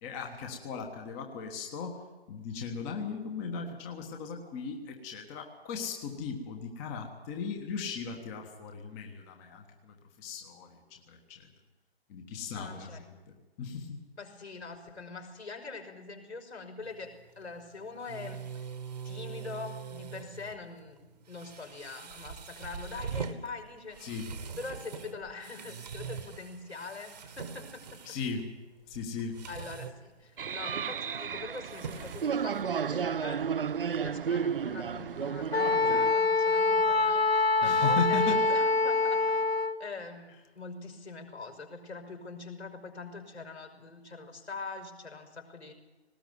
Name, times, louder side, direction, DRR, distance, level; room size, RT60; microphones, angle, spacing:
voice 1, 0.0-2.0 2.3-11.5 12.1-14.0 24.0-24.3 28.0-28.4 28.9-29.4 37.6-38.5, left 5 dB, 15° left, 3 dB, 1.3 m, -37 dB
voice 2, 12.5-13.0 14.2-18.7 19.0-24.2 24.6-28.2 29.5-33.5 34.0-39.4 39.8-45.7, left 4 dB, 80° left, 4 dB, 5.7 m, -43 dB
sound 1, 16.8-33.0, right 6 dB, 40° right, 1.5 m, -44 dB
sound 2, 30.4-36.1, right 7 dB, 55° right, 0.6 m, -33 dB
Wind instrument woodwind instrument, 35.5-39.8, left 3 dB, 65° left, 1.5 m, -25 dB
19.0 x 19.0 x 9.3 m, 1.2 s
figure-of-eight pair, 150°, 33 cm